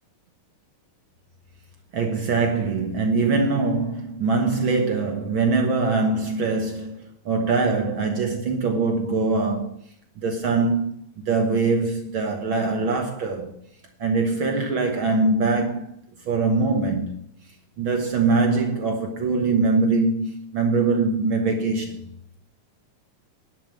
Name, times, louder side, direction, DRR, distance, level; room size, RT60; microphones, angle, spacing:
voice 1, 1.9-9.8 10.2-11.0 11.3-13.5 14.0-16.0 16.2-17.1 17.8-22.1, right 3 dB, 65° right, 1.2 m, -23 dB
11.0 x 7.2 x 7.5 m
omnidirectional pair, 4.0 m